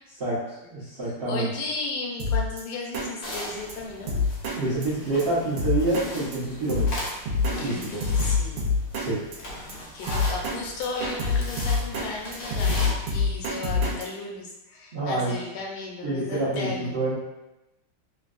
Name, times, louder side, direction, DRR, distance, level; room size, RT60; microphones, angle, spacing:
voice 1, 0.7-1.5 4.5-6.8 7.6-8.0 9.0-9.2 14.9-15.4 16.0-17.1, right 2 dB, 50° right, -11 dB, 0.7 m, -27 dB
voice 2, 1.3-4.5 7.5-8.7 9.5-16.9, left 3 dB, 85° left, -1 dB, 1.5 m, -35 dB
Drum kit, 2.2-2.6 2.9-3.1 3.3-3.4 3.7-3.8 4.1-4.6 4.8-4.9 5.2-5.3 5.6-6.1 6.3-6.4 6.7-7.6 7.8-9.1 9.3-9.4 9.7-9.8 10.1-10.6 10.8-12.1 12.3-14.0, left 4 dB, 90° right, 1.6 m, -25 dB
sound 1, 3.2-12.9, equal, 60° left, 1.0 m, -38 dB
3.8 x 2.2 x 2.4 m, 0.94 s
omnidirectional pair, 2.3 m